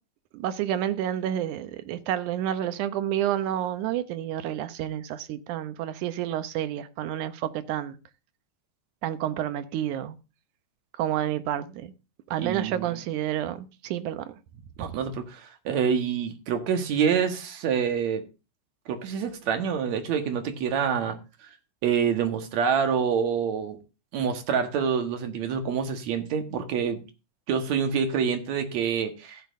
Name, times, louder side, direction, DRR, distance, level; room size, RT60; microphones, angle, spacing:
voice 1, 0.3-8.0 9.0-10.2 11.0-11.9 12.3-14.4, right 11 dB, 80° right, 2.3 m, -29 dB
voice 2, 12.4-12.9 14.8-18.2 18.9-21.2 21.8-23.8 24.1-27.0 27.5-29.4, right 7 dB, 65° right, 2.6 m, -26 dB
14.5 x 10.5 x 2.6 m
omnidirectional pair, 3.6 m